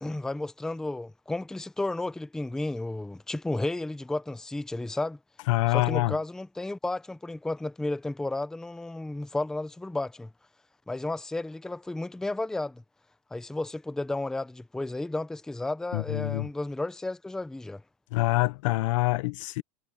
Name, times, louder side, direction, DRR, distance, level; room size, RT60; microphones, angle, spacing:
voice 1, 0.0-5.2 5.7-10.3 10.9-12.8 13.3-17.8, left 2 dB, 5° left, 0.7 m, -33 dB
voice 2, 5.5-6.1 15.9-16.5 18.1-19.6, left 20 dB, 65° left, 1.0 m, -25 dB
supercardioid pair, 160°, 18 cm